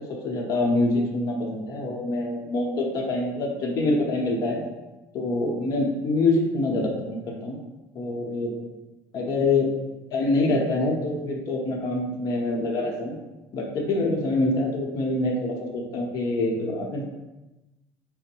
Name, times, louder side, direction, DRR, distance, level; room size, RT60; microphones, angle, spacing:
voice 1, 0.2-4.6 5.1-7.6 7.9-8.5 9.1-9.7 10.1-13.1 13.5-17.0, left 2 dB, 50° left, -1 dB, 0.9 m, -25 dB
4.0 x 2.1 x 4.5 m, 1.0 s
cardioid pair, 145°, 8 cm